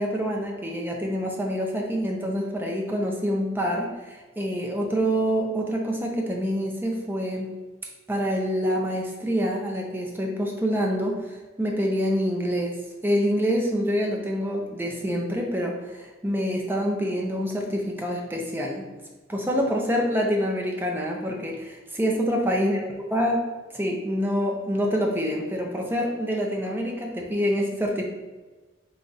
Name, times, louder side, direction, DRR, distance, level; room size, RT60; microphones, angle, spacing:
voice 1, 0.0-7.5 8.1-12.8 13.0-18.9 19.3-22.8 23.1-23.5 23.7-28.0, equal, 10° right, 0 dB, 0.6 m, -26 dB
4.4 x 2.5 x 3.9 m, 1.2 s
head